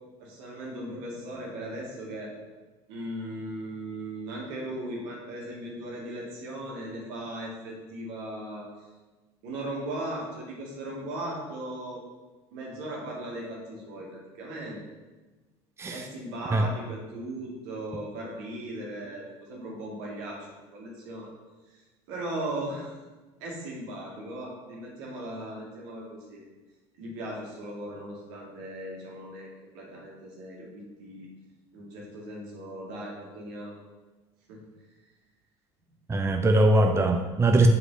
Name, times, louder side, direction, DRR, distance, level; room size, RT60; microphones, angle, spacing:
voice 1, 0.2-2.3 2.9-8.7 9.4-12.0 12.5-14.1 14.4-14.8 15.9-20.5 20.7-21.3 22.1-23.0 23.4-26.4 27.0-29.5 29.7-31.3 31.7-33.7 34.5-34.6, right 1 dB, 75° right, -3 dB, 2.3 m, -37 dB
voice 2, 36.1-37.7, right 2 dB, 20° right, 4 dB, 0.6 m, -21 dB
7.7 x 5.4 x 4.0 m, 1.2 s
hypercardioid pair, 85°, 15 cm